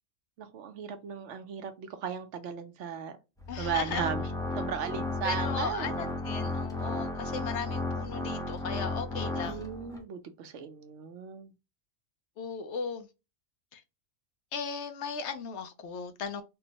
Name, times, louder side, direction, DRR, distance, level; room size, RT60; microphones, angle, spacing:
voice 1, 0.4-3.1 3.6-4.2 4.5-6.0 9.4-11.5, right 7 dB, 75° right, 0.9 m, -36 dB
Organ, 3.4-10.0, left 2 dB, 5° left, 0.4 m, -34 dB
voice 2, 3.5-4.1 5.2-9.7 12.4-13.1 13.7-13.8 14.5-16.4, left 6 dB, 70° left, 0.9 m, -37 dB
3.6 x 2.0 x 2.7 m
omnidirectional pair, 1.3 m